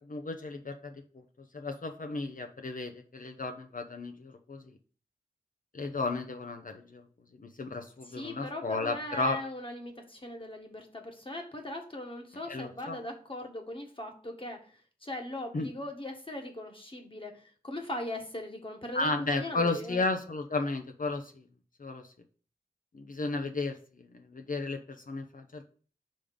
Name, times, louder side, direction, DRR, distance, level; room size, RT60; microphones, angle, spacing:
voice 1, 0.1-1.0 1.5-4.6 5.7-7.0 7.4-9.4 12.5-13.0 15.5-15.7 18.9-21.4 21.8-22.1 22.9-25.6, left 3 dB, 60° left, 6 dB, 0.7 m, -34 dB
voice 2, 8.0-20.0, left 1 dB, 35° left, 3 dB, 1.5 m, -40 dB
5.2 x 3.6 x 5.3 m, 0.41 s
wide cardioid pair, 70°, 16 cm